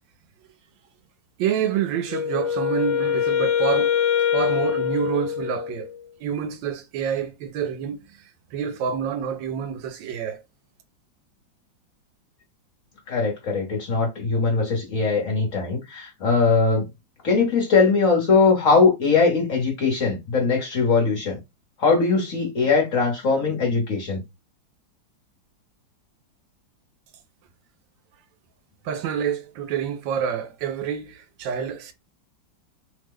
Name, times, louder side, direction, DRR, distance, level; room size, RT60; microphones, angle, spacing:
voice 1, 1.4-5.9 6.2-8.0 8.5-10.4 28.8-31.9, right 8 dB, 80° right, 1.3 m, -27 dB
Wind instrument woodwind instrument, 2.1-6.0, left 9 dB, 75° left, 1.3 m, -24 dB
voice 2, 13.1-16.9 17.2-21.4 21.8-24.2, left 4 dB, 50° left, 1.1 m, -21 dB
3.2 x 2.1 x 3.5 m
omnidirectional pair, 2.1 m